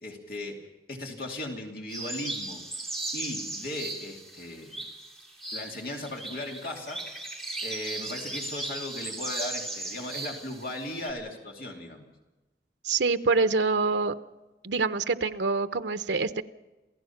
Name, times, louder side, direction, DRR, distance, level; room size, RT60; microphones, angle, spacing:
voice 1, 0.0-4.9 5.5-12.1, left 1 dB, 55° left, 1 dB, 2.7 m, -37 dB
sound 1, 1.9-11.1, right 2 dB, ahead, 2.8 m, -37 dB
voice 2, 12.8-14.1 14.6-16.4, right 4 dB, 90° right, 10 dB, 0.8 m, -25 dB
27.5 x 16.5 x 5.9 m, 1.1 s
head